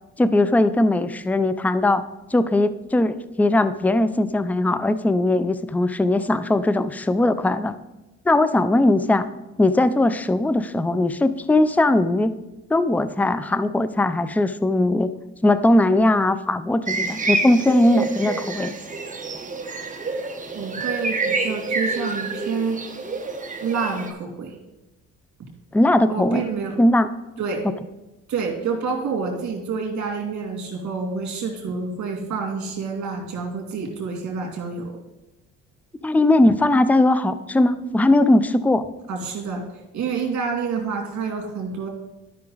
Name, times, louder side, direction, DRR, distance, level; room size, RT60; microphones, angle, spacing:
voice 1, 0.2-2.0 2.3-7.7 8.3-9.2 9.6-12.3 12.7-15.1 15.4-18.7 25.7-26.4 26.8-27.1 27.6-27.7 36.0-38.9, left 1 dB, 5° left, 13 dB, 0.4 m, -19 dB
sound 1, 16.9-24.1, right 3 dB, 25° right, 1.2 m, -28 dB
voice 2, 20.5-22.8 23.6-24.6 25.4-25.5 26.1-26.8 27.4-27.7 28.3-35.0 39.1-39.6 39.9-41.9, right 5 dB, 65° right, 1 dB, 2.6 m, -28 dB
12.0 x 5.7 x 3.9 m, 1.0 s
cardioid pair, 90°, 30 cm